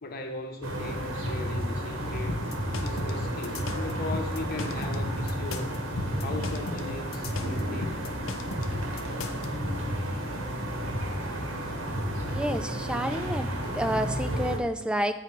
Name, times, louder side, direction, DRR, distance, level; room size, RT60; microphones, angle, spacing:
voice 1, 0.0-2.4 2.8-5.7 6.2-8.1, left 2 dB, 45° left, 4 dB, 0.9 m, -38 dB
sound 1, 0.6-14.6, equal, 85° right, 1.4 m, -32 dB
sound 2, 0.7-13.4, left 3 dB, 20° left, 1.2 m, -47 dB
sound 3, 2.3-9.5, left 3 dB, 80° left, 0.6 m, -37 dB
voice 2, 12.3-13.5 13.7-15.2, equal, 5° right, 9 dB, 0.4 m, -29 dB
7.8 x 4.9 x 4.5 m, 0.94 s
head